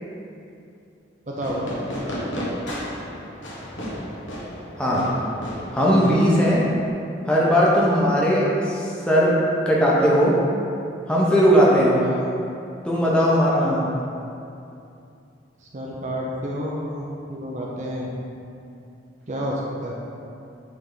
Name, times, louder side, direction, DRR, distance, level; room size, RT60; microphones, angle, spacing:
voice 1, 1.3-1.8 11.9-12.3 15.6-18.1 19.3-19.9, equal, 40° right, -3 dB, 0.6 m, -30 dB
Fireworks, 1.4-6.9, equal, 80° left, 1.3 m, -33 dB
voice 2, 4.8-5.1 5.7-6.7 7.3-10.4 11.1-12.0 12.8-13.9, equal, 5° left, -6 dB, 0.9 m, -18 dB
8.5 x 3.5 x 3.9 m, 2.6 s
head